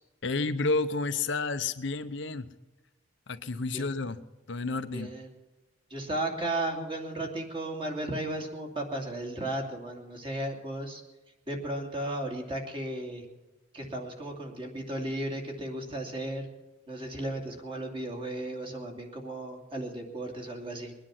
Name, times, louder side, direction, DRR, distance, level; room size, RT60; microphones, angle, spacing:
voice 1, 0.2-2.5 3.3-4.2 4.5-5.1, left 3 dB, 65° left, 9 dB, 0.8 m, -30 dB
voice 2, 4.9-5.3 5.9-11.0 11.5-13.3 13.7-16.5 16.9-20.9, right 1 dB, 30° right, 2 dB, 2.6 m, -35 dB
22.0 x 10.0 x 5.9 m, 1.1 s
head